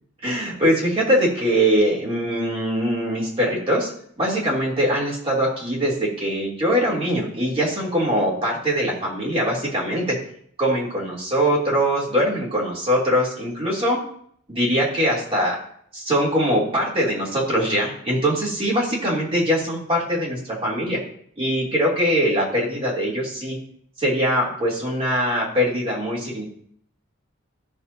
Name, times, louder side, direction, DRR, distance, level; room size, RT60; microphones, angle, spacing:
voice 1, 0.2-3.9 4.2-10.2 10.6-14.0 14.5-15.6 15.9-21.0 21.4-23.6 24.0-26.5, equal, 30° right, -5 dB, 3.1 m, -22 dB
17.0 x 6.5 x 2.8 m, 0.64 s
head